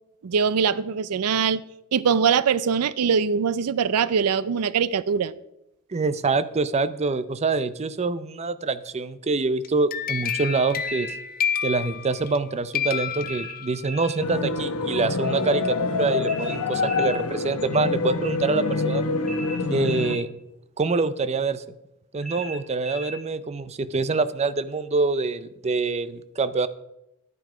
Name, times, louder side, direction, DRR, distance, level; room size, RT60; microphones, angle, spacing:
voice 1, 0.2-1.6 1.9-5.3, right 6 dB, 80° right, 0.5 m, -22 dB
voice 2, 5.9-11.1 11.6-19.0 19.7-20.3 20.8-21.6 22.1-26.7, right 3 dB, 30° right, 0.5 m, -25 dB
sound 1, 9.6-12.4 12.7-14.0, left 8 dB, 40° left, 0.5 m, -29 dB
sound 2, 10.2-11.2 13.2-14.2 16.2-17.2 19.2-20.3 22.2-23.2, right 1 dB, ahead, 2.2 m, -38 dB
sound 3, 14.2-20.2, left 4 dB, 70° left, 1.1 m, -26 dB
12.0 x 9.3 x 5.0 m
head